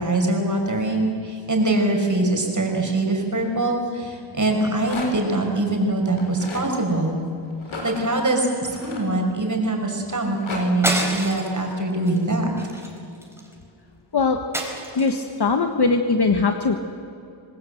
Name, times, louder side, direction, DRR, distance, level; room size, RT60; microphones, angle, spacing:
voice 1, 0.0-7.2 7.8-12.5, right 2 dB, 35° right, 1 dB, 5.5 m, -23 dB
Rattle, 4.5-5.3 6.1-6.7 7.6-9.6 10.1-10.6, left 2 dB, 75° left, 5.2 m, -35 dB
sound 1, 10.8-11.6 12.0-12.2 12.6-13.5 14.5-15.3, right 1 dB, 5° right, 4.7 m, -28 dB
voice 2, 14.9-16.8, left 4 dB, 55° left, 5 dB, 1.4 m, -20 dB
26.5 x 19.0 x 7.9 m, 2.7 s
wide cardioid pair, 70°, 49 cm